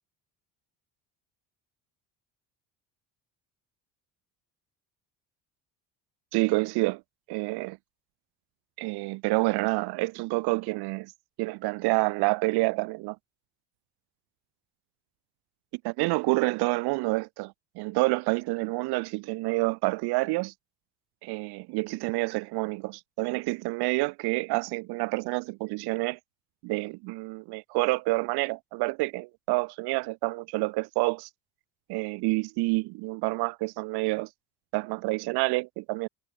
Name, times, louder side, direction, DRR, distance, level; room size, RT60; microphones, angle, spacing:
voice 1, 6.3-7.0 7.3-7.8 8.8-11.1 11.4-13.2 15.8-20.5 21.2-26.2 26.6-31.3 31.9-34.3 34.7-36.1, right 24 dB, 80° right, 1.3 m, -28 dB
cardioid pair, 165°, 38 cm